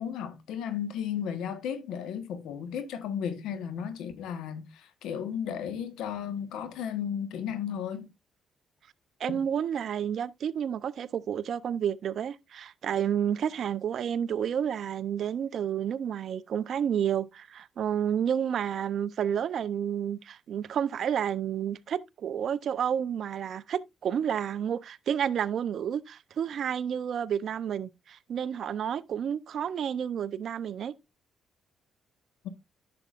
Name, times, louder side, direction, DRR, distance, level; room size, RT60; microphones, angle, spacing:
voice 1, 0.0-8.1 9.3-9.4 32.4-32.5, left 8 dB, 85° left, 1.2 m, -34 dB
voice 2, 9.2-30.9, right 8 dB, 65° right, 0.5 m, -30 dB
10.5 x 6.8 x 2.4 m
cardioid pair, 90°, 0 cm